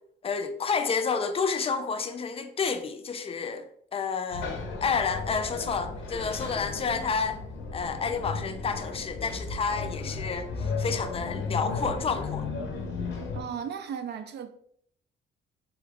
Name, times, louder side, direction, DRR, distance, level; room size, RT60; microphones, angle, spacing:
voice 1, 0.2-3.6 3.9-4.5 4.8-7.4 7.7-12.5, left 5 dB, 30° left, 0.4 m, -30 dB
sound 1, 4.3-13.4, left 4 dB, 75° left, 0.7 m, -34 dB
voice 2, 13.3-14.5, right 7 dB, 60° right, 0.4 m, -35 dB
2.9 x 2.4 x 3.4 m
cardioid pair, 90°, 20 cm